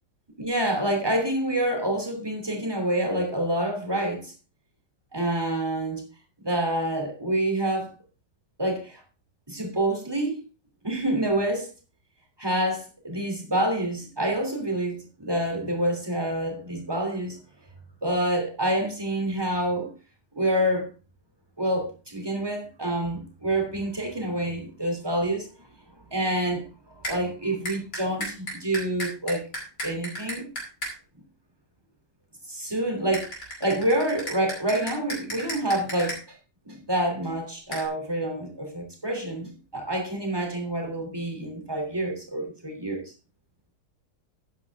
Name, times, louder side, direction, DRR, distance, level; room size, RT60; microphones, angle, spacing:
voice 1, 0.4-4.3 5.1-6.0 6.4-7.9 8.6-9.0 9.5-10.4 10.8-11.7 12.4-17.4 18.0-19.9 20.3-20.9 21.6-25.7 26.1-29.4 29.8-30.5 32.5-36.4 36.6-43.0, right 1 dB, 10° right, 2.9 m, -27 dB
sound 1, 27.0-27.2 27.7-30.9 33.1-36.2 37.7-37.9, equal, 65° left, 5.3 m, -34 dB
12.5 x 9.5 x 3.5 m
omnidirectional pair, 2.0 m